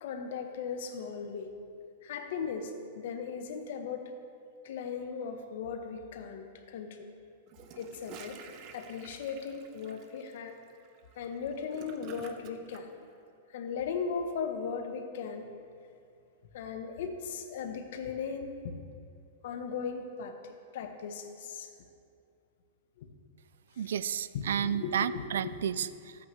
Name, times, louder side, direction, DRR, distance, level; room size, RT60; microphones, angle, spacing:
voice 1, 0.0-1.5 2.0-4.1 4.6-7.1 7.8-8.4 8.7-10.6 11.2-12.9 13.5-15.5 16.5-18.7 19.4-21.7 23.0-23.1 24.3-25.6, left 6 dB, 60° left, 5 dB, 0.9 m, -37 dB
Gurgling / Toilet flush, 7.5-12.8, right 6 dB, 35° right, 0.6 m, -50 dB
voice 2, 23.8-26.3, right 9 dB, 85° right, 16 dB, 0.3 m, -32 dB
13.0 x 8.5 x 3.2 m, 2.4 s
supercardioid pair, 160°, 0 cm